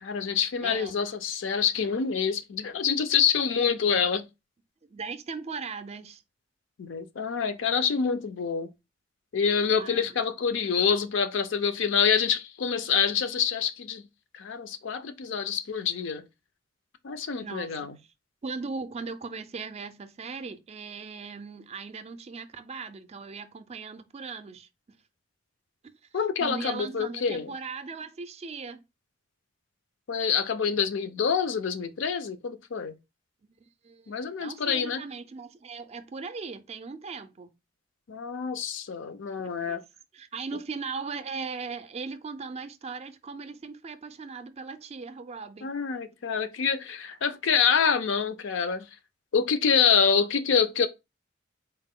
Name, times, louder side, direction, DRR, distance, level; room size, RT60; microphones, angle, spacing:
voice 1, 0.0-4.3 6.8-8.7 9.3-14.0 14.3-16.2 17.0-18.0 26.1-27.5 30.1-33.0 34.1-35.0 38.1-39.8 45.6-48.9 49.3-50.9, left 6 dB, 70° left, 0.5 m, -26 dB
voice 2, 0.6-0.9 4.8-6.2 9.7-10.1 17.4-17.9 18.4-24.7 25.8-28.8 33.8-37.6 39.4-39.8 40.1-45.7, right 4 dB, 35° right, 0.4 m, -38 dB
4.0 x 2.2 x 3.6 m
head